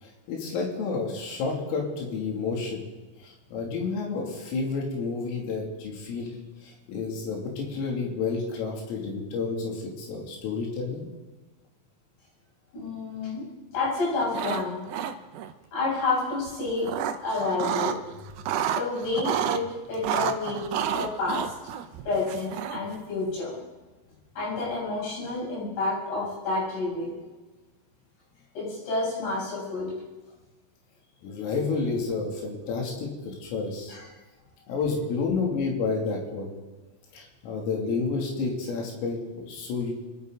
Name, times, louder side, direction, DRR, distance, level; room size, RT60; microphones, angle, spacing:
voice 1, 0.0-2.8 3.2-6.4 6.6-11.1 31.2-34.0 34.7-36.5 37.1-39.9, left 4 dB, 80° left, -1 dB, 5.4 m, -30 dB
voice 2, 12.7-13.4 13.7-14.8 15.7-16.9 17.2-18.0 18.7-19.6 19.9-21.5 22.0-23.6 24.4-27.2 28.5-29.9 33.9-34.1, left 3 dB, 60° left, -6 dB, 9.8 m, -29 dB
sound 1, 14.2-14.6 14.9-15.5 16.5-18.0 18.3-19.6 20.0-22.9, right 9 dB, 85° right, 2.4 m, -30 dB
26.0 x 12.5 x 3.9 m, 1.2 s
omnidirectional pair, 5.9 m